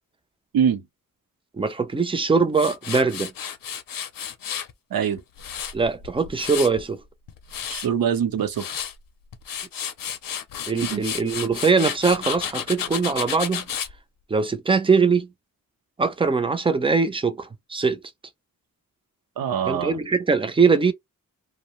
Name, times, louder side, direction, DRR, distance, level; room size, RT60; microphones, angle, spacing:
voice 1, 1.6-3.3 5.7-7.0 10.7-13.7 14.3-15.3 16.0-18.0 19.6-20.9, right 4 dB, 15° right, 0.4 m, -22 dB
Tools, 2.5-4.7 5.2-6.8 7.3-7.9 8.4-8.9 9.3-13.9, left 8 dB, 70° left, 0.6 m, -32 dB
voice 2, 4.9-5.2 7.7-8.6 10.8-11.0 19.4-20.0, right 8 dB, 90° right, 0.7 m, -23 dB
2.7 x 2.0 x 2.9 m
wide cardioid pair, 175°, 34 cm